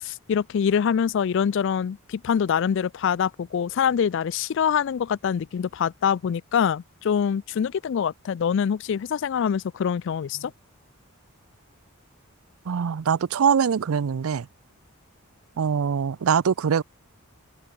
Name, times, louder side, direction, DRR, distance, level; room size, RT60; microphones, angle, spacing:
voice 1, 0.0-10.5, left 7 dB, 60° left, 0.3 m, -24 dB
voice 2, 12.7-14.5 15.6-16.8, right 7 dB, 75° right, 0.4 m, -23 dB
head